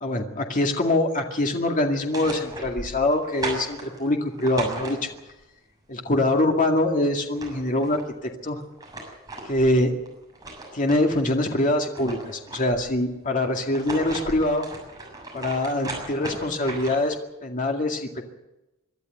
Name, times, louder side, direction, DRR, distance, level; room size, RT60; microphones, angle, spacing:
voice 1, 0.0-5.1 5.9-8.0 8.4-8.6 9.4-9.9 10.7-14.7 15.3-17.2 17.4-18.3, left 1 dB, 40° left, 2 dB, 2.2 m, -24 dB
sound 1, 1.9-5.4 6.9-7.0 7.2-8.1 8.6-11.2 11.6-13.0 13.6-17.2, right 2 dB, 20° right, 6.9 m, -37 dB
23.5 x 12.5 x 9.3 m, 0.97 s
head